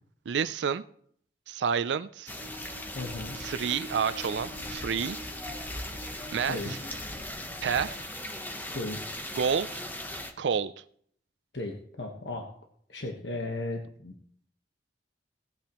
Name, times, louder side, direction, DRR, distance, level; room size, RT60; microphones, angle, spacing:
voice 1, 0.3-0.8 1.5-2.3 3.4-5.2 6.3-6.8 7.6-8.0 9.4-9.8 10.4-10.8, right 6 dB, 75° right, 0.4 m, -29 dB
sound 1, 2.3-10.3, left 1 dB, 10° left, 0.9 m, -39 dB
sound 2, 2.4-8.0, right 1 dB, 55° left, 5.7 m, -47 dB
voice 2, 2.9-3.4 6.5-6.8 8.7-9.0 11.5-12.5 12.9-14.1, left 2 dB, 70° left, 1.3 m, -35 dB
17.5 x 8.6 x 3.0 m
head